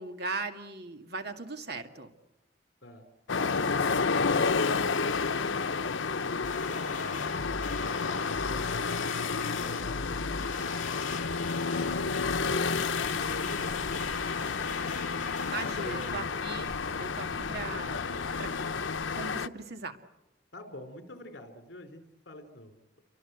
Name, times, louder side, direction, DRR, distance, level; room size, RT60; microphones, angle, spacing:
voice 1, 0.0-2.1 15.5-16.7 17.0-18.0 18.4-18.7 19.1-20.0, right 3 dB, 60° right, 6 dB, 2.2 m, -38 dB
voice 2, 2.8-5.0 15.3-16.5 20.5-23.0, left 1 dB, 65° left, 8 dB, 3.7 m, -48 dB
sound 1, 3.3-19.5, left 5 dB, 90° left, 0.9 m, -30 dB
sound 2, 6.4-16.1, left 3 dB, 45° left, 4.2 m, -42 dB
sound 3, 11.8-19.2, equal, 85° right, 2.7 m, -48 dB
29.5 x 24.5 x 8.1 m, 0.94 s
head